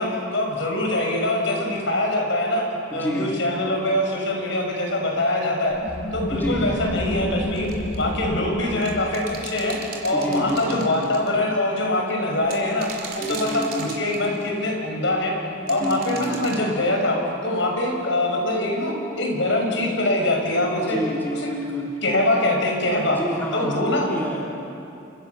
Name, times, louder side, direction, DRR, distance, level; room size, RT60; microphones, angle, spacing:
voice 1, 0.0-2.7 2.9-5.8 6.1-7.7 8.0-15.3 15.7-17.2 17.4-21.0 22.0-23.2 23.5-24.1, left 1 dB, 65° left, 1 dB, 6.5 m, -23 dB
voice 2, 2.9-3.3 6.3-6.8 10.1-10.9 13.2-14.0 15.7-16.5 20.8-21.9 23.0-24.4, equal, 10° left, -4 dB, 3.3 m, -29 dB
sound 1, 5.8-11.1, left 1 dB, 40° left, 1.4 m, -31 dB
sound 2, 7.5-8.0 8.8-11.3 12.4-14.5 15.7-16.6, right 6 dB, 45° right, 3.9 m, -38 dB
29.0 x 27.0 x 7.2 m, 2.6 s
head